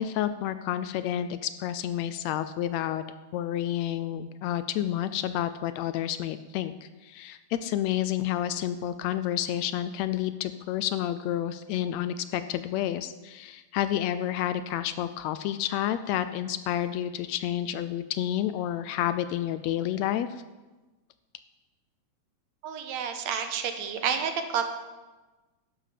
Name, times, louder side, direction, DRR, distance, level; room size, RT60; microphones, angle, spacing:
voice 1, 0.0-3.0 3.3-20.4, left 11 dB, 80° left, 12 dB, 1.7 m, -30 dB
voice 2, 22.6-24.6, right 7 dB, 75° right, 7 dB, 2.2 m, -30 dB
12.0 x 11.0 x 5.0 m, 1.2 s
omnidirectional pair, 3.3 m